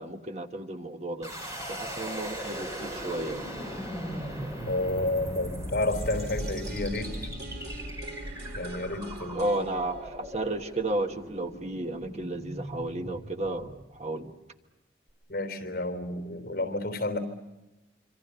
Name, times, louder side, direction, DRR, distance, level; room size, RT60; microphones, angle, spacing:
voice 1, 0.0-1.3 1.6-3.5 9.3-14.3, right 2 dB, 40° right, 6 dB, 1.3 m, -33 dB
sound 1, 1.2-14.2, equal, 20° right, 5.0 m, -38 dB
voice 2, 4.7-7.1 8.6-9.5 15.3-17.2, left 2 dB, 55° left, 7 dB, 3.6 m, -30 dB
sound 2, 5.9-11.8 12.1-12.2, right 3 dB, 65° right, 2.2 m, -45 dB
26.5 x 25.5 x 6.8 m, 1.1 s
head